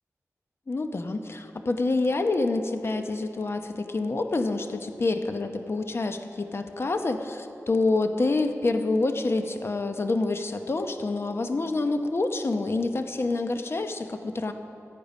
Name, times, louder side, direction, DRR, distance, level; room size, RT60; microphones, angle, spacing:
voice 1, 0.7-14.5, left 3 dB, 45° left, 6 dB, 0.9 m, -27 dB
15.5 x 8.6 x 5.4 m, 2.9 s
wide cardioid pair, 90°, 6 cm